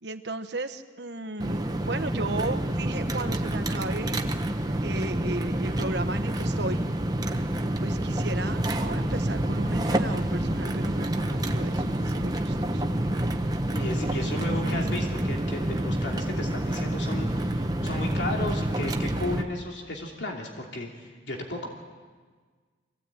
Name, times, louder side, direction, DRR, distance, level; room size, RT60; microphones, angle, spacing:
voice 1, 0.0-4.3 4.8-6.8 7.8-12.8 14.1-15.0, right 2 dB, 70° right, 8 dB, 1.3 m, -35 dB
sound 1, 1.4-19.4, right 1 dB, 20° right, 1.0 m, -28 dB
voice 2, 13.7-21.7, left 1 dB, 80° left, 0 dB, 2.8 m, -34 dB
24.5 x 16.5 x 8.9 m, 1.5 s
head